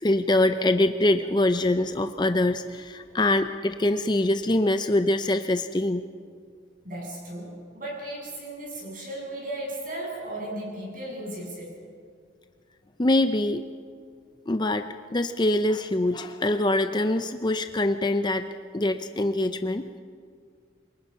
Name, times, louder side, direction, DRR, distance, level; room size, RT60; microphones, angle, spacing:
voice 1, 0.0-6.0 13.0-13.7 14.5-18.5 18.7-20.0, left 1 dB, 25° left, 9 dB, 0.6 m, -24 dB
voice 2, 6.8-11.8, right 1 dB, 45° right, -2 dB, 7.9 m, -36 dB
27.0 x 23.5 x 5.7 m, 2.1 s
head